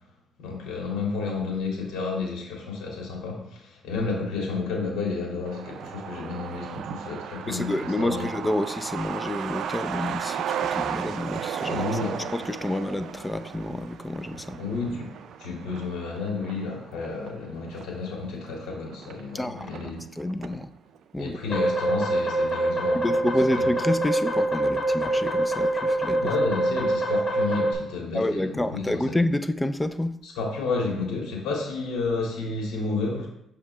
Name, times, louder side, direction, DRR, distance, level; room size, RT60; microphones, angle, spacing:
voice 1, 0.4-8.3 11.7-12.3 14.6-15.1 15.4-20.1 21.2-23.3 26.2-29.0 30.2-33.3, left 4 dB, 85° left, -1 dB, 2.1 m, -31 dB
Truck, 5.4-20.6 21.0-21.1 21.3-22.2 22.5-22.6 22.9-23.3, right 8 dB, 75° right, 0.4 m, -35 dB
voice 2, 7.5-11.9 12.3-14.6 19.3-20.7 21.1-21.4 23.0-26.3 28.1-30.2, left 1 dB, 10° left, 10 dB, 0.5 m, -29 dB
sound 1, 21.5-27.7, right 1 dB, 30° left, 2.5 m, -25 dB
7.1 x 5.0 x 3.2 m, 0.80 s
cardioid pair, 90°, 0 cm